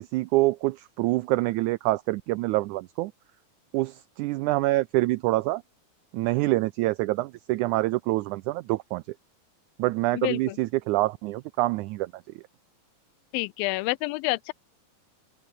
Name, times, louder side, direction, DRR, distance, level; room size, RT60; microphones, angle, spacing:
voice 1, 0.0-3.1 3.7-5.6 6.1-9.0 9.8-12.1, right 19 dB, 85° right, 1.7 m, -26 dB
voice 2, 10.1-10.6 13.3-14.5, left 22 dB, 85° left, 2.3 m, -28 dB
open air
omnidirectional pair, 4.0 m